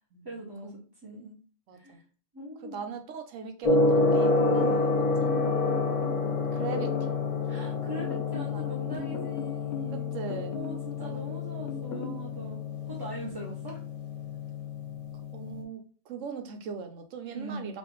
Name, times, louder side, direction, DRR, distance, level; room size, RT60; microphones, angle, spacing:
voice 1, 0.2-1.3 1.7-2.0 2.3-2.8 4.5-4.8 7.4-10.1 10.5-12.6 12.9-13.8 17.3-17.7, right 1 dB, 25° right, -5 dB, 0.7 m, -41 dB
voice 2, 1.7-2.0 2.6-4.9 5.2-5.3 6.1-7.1 8.5-8.7 9.9-10.6 11.0-11.7 15.3-17.8, right 5 dB, 85° right, 7 dB, 1.1 m, -40 dB
Gong, 3.6-15.6, left 3 dB, 30° left, 0.8 m, -29 dB
sound 1, 5.2-6.2 6.6-7.2 8.0-8.5 8.9-9.9 10.3-10.9 11.7-12.2, left 5 dB, 65° left, 0.8 m, -38 dB
5.3 x 2.5 x 3.0 m, 0.39 s
omnidirectional pair, 1.3 m